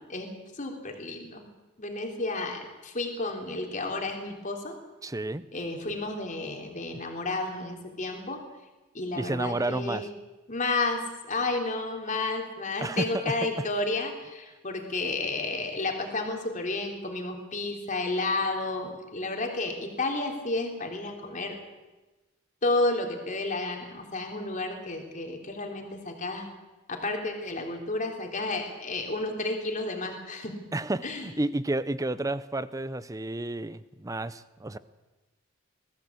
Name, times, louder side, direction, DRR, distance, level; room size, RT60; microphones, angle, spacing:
voice 1, 0.0-1.5 1.8-4.7 5.5-8.4 8.9-10.1 10.5-21.6 22.6-26.5 26.9-30.6 31.0-31.3, left 2 dB, 40° left, 2 dB, 3.4 m, -31 dB
voice 2, 5.0-5.4 9.2-10.1 12.8-13.4 30.7-34.8, right 2 dB, 15° right, 15 dB, 0.6 m, -31 dB
21.5 x 15.0 x 8.5 m, 1.1 s
head